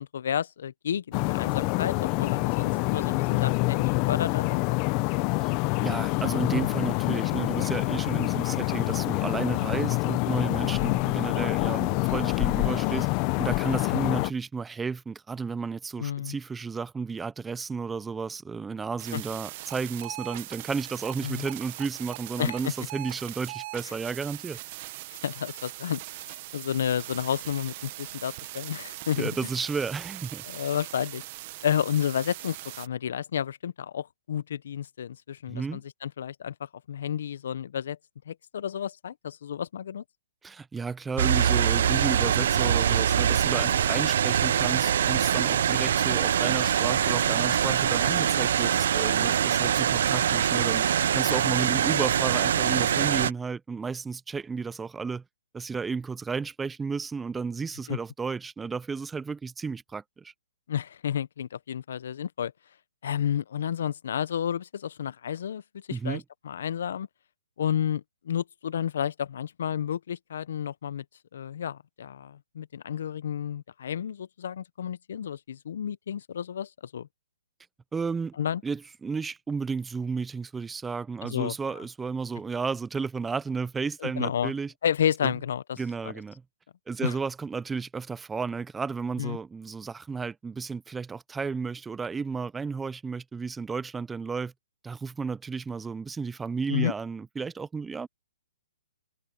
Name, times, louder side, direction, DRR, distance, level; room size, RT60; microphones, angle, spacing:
voice 1, 0.0-4.8 10.8-11.1 16.0-16.4 19.1-19.2 21.2-21.5 22.4-22.7 25.1-29.4 30.5-31.2 31.6-38.0 38.3-40.0 57.9-58.0 60.7-62.5 63.0-65.6 65.9-67.1 67.6-71.0 71.3-77.1 78.4-78.6 81.2-81.6 84.0-84.5 84.8-86.1 87.0-87.2 89.2-89.4 96.7-96.9, left 9 dB, 65° left, 1.0 m, -31 dB
sound 1, 1.1-14.3, left 26 dB, 30° left, 1.0 m, -26 dB
voice 2, 5.8-13.1 13.4-24.6 29.2-30.4 35.5-35.8 40.4-50.9 51.1-55.2 55.5-60.3 65.9-66.2 77.9-78.4 78.6-84.7 85.2-85.3 85.8-86.4 86.9-94.5 94.8-98.1, right 5 dB, 10° right, 0.6 m, -33 dB
sound 2, 19.0-32.9, right 19 dB, 40° right, 1.3 m, -41 dB
sound 3, 41.2-53.3, right 9 dB, 60° right, 0.6 m, -24 dB
hypercardioid pair, 140°, 0 cm